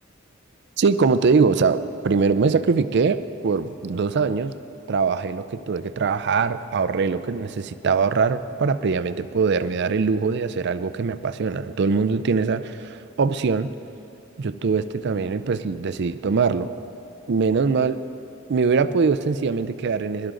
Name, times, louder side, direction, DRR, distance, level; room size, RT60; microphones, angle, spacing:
voice 1, 0.8-4.5 4.9-13.7 14.4-16.7 17.3-18.0 18.5-20.3, right 5 dB, 55° right, 13 dB, 0.4 m, -22 dB
20.5 x 11.5 x 3.8 m, 2.6 s
head